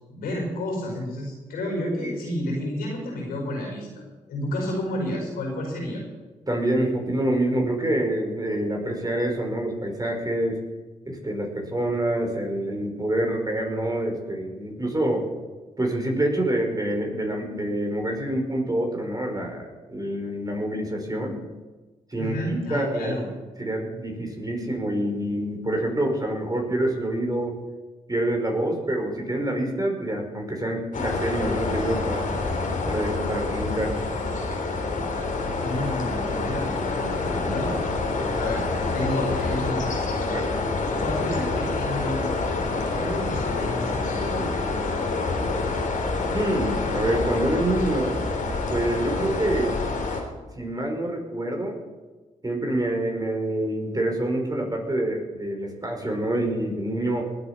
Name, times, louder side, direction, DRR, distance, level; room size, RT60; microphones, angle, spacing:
voice 1, 0.1-4.0 4.3-6.0 22.2-23.3 35.6-37.7 38.4-38.6 38.9-39.9 41.0-42.2 42.9-44.5, left 1 dB, 90° left, 0 dB, 5.2 m, -30 dB
voice 2, 6.5-10.6 11.1-15.3 15.8-21.4 22.1-23.1 23.6-27.6 28.1-32.3 32.9-34.1 40.3-40.5 46.3-48.1 48.7-49.8 50.6-51.8 52.4-57.2, right 1 dB, 25° right, 2 dB, 4.8 m, -26 dB
sound 1, 30.9-50.2, left 3 dB, 60° left, 3.2 m, -27 dB
19.5 x 8.2 x 5.8 m, 1.2 s
supercardioid pair, 50°, 15 cm